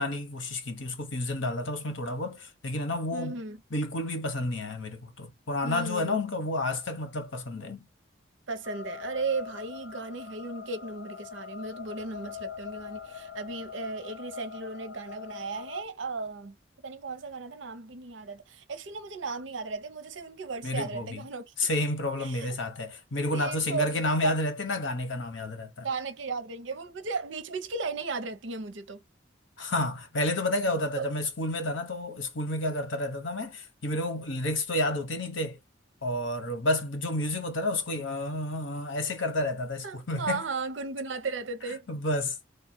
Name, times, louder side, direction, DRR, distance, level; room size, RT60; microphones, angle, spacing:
voice 1, 0.0-3.4 3.7-7.8 20.6-21.2 21.6-25.9 29.6-35.6 36.0-40.4 41.9-42.4, left 1 dB, 90° left, 1.0 m, -30 dB
voice 2, 3.1-3.6 5.6-6.2 8.5-16.6 16.8-21.5 22.2-22.5 23.3-24.4 25.8-29.0 31.0-31.1 39.8-41.9, right 4 dB, 80° right, 0.7 m, -35 dB
sound 1, 8.6-15.8, left 7 dB, 65° left, 0.6 m, -42 dB
3.3 x 2.3 x 4.4 m
head